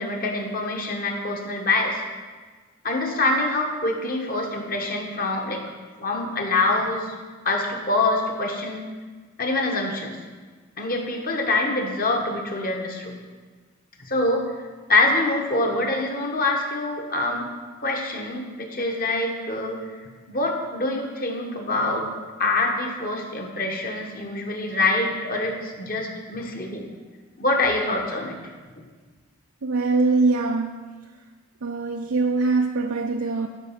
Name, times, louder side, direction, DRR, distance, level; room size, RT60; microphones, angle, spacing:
voice 1, 0.0-2.0 2.8-5.6 6.0-7.1 7.4-8.8 9.4-10.2 10.8-13.1 14.0-14.5 14.9-17.5 17.8-19.8 20.3-22.1 22.4-26.9 27.4-28.4, left 2 dB, 40° left, 2 dB, 1.3 m, -25 dB
voice 2, 29.6-30.9 31.6-33.5, right 3 dB, 80° right, 2 dB, 0.6 m, -23 dB
12.0 x 5.3 x 5.9 m, 1.4 s
head